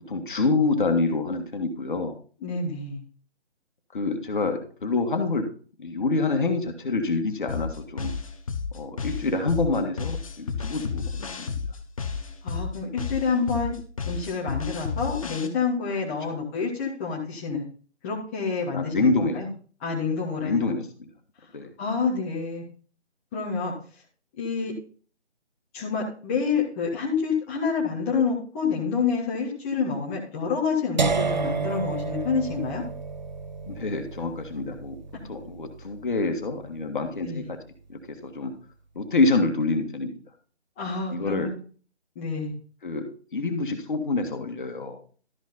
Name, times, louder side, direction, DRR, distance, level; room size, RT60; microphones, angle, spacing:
voice 1, 0.1-2.2 3.9-5.5 5.8-8.1 8.7-11.3 16.3-16.4 18.7-19.4 20.4-21.1 21.5-21.7 33.6-35.0 35.2-37.6 37.9-38.5 39.0-40.2 41.1-41.5 42.8-43.1 43.3-45.0, left 3 dB, 45° left, 5 dB, 1.8 m, -26 dB
voice 2, 2.4-3.0 12.4-13.7 14.1-17.6 18.0-19.5 19.8-20.6 21.8-22.6 23.3-23.7 24.4-24.7 25.7-32.8 37.2-37.4 40.8-41.5 42.1-42.5, left 5 dB, 10° left, -4 dB, 1.3 m, -28 dB
sound 1, 7.5-15.5, left 5 dB, 30° left, 1.0 m, -32 dB
sound 2, 31.0-36.9, right 4 dB, 40° right, 0.5 m, -31 dB
13.0 x 6.3 x 4.1 m, 0.41 s
figure-of-eight pair, 155°, 34 cm